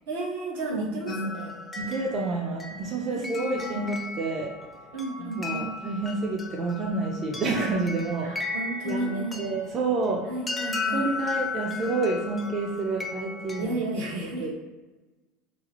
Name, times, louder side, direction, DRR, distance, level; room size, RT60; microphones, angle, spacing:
voice 1, 0.1-1.6 3.1-3.8 4.9-5.7 8.2-9.5 10.3-11.1 13.6-14.5, right 2 dB, 75° right, -3 dB, 0.8 m, -33 dB
voice 2, 0.8-1.3 1.8-4.5 5.2-8.3 8.8-10.3 10.9-13.7 14.4-14.5, right 3 dB, 40° right, -1 dB, 0.4 m, -29 dB
sound 1, 1.1-13.6, left 4 dB, 20° left, 0.4 m, -36 dB
2.6 x 2.0 x 2.9 m, 1.2 s
hypercardioid pair, 90°, 0 cm